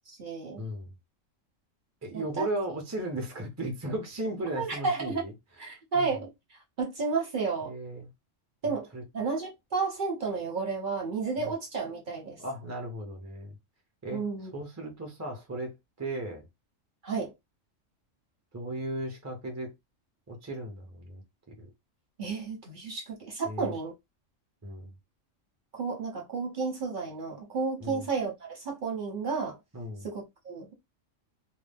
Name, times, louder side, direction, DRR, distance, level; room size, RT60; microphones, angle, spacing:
voice 1, 0.1-0.6 2.4-2.5 4.5-5.2 5.6-6.3 6.8-7.7 8.6-8.9 9.1-12.4 14.1-14.5 17.0-17.3 22.2-23.9 25.7-29.6 30.0-30.7, right 4 dB, 45° right, 0.8 m, -32 dB
voice 2, 0.6-0.9 2.0-5.3 5.7-6.1 7.6-8.1 8.6-9.0 11.4-11.5 12.4-13.5 14.0-14.2 14.5-16.5 18.5-19.7 20.3-21.2 21.5-21.7 23.4-23.8 24.6-24.9 27.8-28.1 29.7-30.1, right 1 dB, 20° right, 0.4 m, -36 dB
2.2 x 2.0 x 3.3 m
omnidirectional pair, 1.3 m